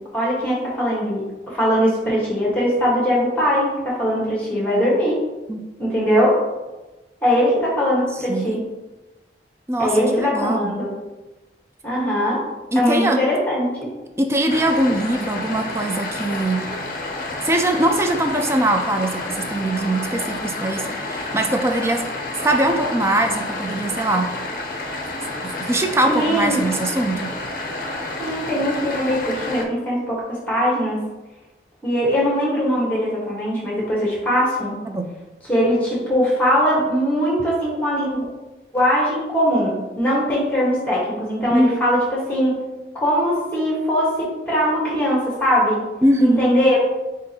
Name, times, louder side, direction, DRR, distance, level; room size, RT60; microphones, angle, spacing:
voice 1, 0.1-5.2 5.8-6.4 7.2-8.6 9.8-10.9 11.8-12.4 12.7-13.9 26.1-26.6 28.2-31.0 31.8-34.7 35.5-38.2 38.7-42.5 42.9-45.8 46.2-46.8, equal, 10° left, -5 dB, 1.3 m, -20 dB
voice 2, 8.3-8.6 9.7-10.7 12.7-13.2 14.2-16.6 17.4-22.0 22.4-24.3 25.7-27.3 34.9-35.1 41.5-41.8 46.0-46.4, right 1 dB, 15° right, 4 dB, 0.3 m, -21 dB
sound 1, 14.5-29.6, left 2 dB, 50° left, 0.6 m, -29 dB
7.4 x 2.5 x 2.8 m, 1.1 s
head